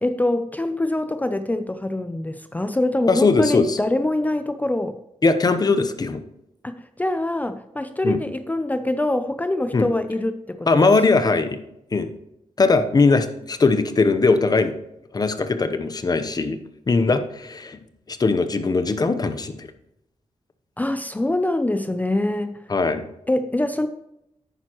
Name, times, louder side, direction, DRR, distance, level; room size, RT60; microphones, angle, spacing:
voice 1, 0.0-5.0 6.6-10.9 20.8-22.6 23.3-23.9, left 1 dB, 15° left, 9 dB, 0.5 m, -24 dB
voice 2, 3.1-3.8 5.2-6.2 8.0-8.2 9.7-9.9 10.7-11.6 11.9-12.1 12.6-14.7 15.1-16.6 16.9-17.8 18.1-19.7 22.7-23.1, left 3 dB, 35° left, 9 dB, 0.9 m, -20 dB
10.5 x 9.1 x 3.0 m, 0.83 s
wide cardioid pair, 110°, 12 cm